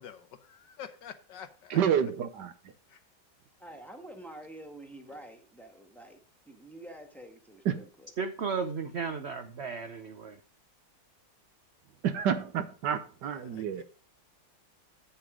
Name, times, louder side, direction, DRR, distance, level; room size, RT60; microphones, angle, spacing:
voice 1, 0.0-1.8 2.9-3.0 13.4-13.8, left 8 dB, 75° left, 1.6 m, -47 dB
voice 2, 1.7-2.5 7.6-7.8 12.0-13.8, right 8 dB, 70° right, 1.4 m, -29 dB
voice 3, 3.6-6.2 6.4-8.1, right 1 dB, ahead, 1.4 m, -48 dB
voice 4, 8.2-10.4, right 5 dB, 55° right, 0.7 m, -34 dB
8.6 x 7.4 x 5.0 m
omnidirectional pair, 2.0 m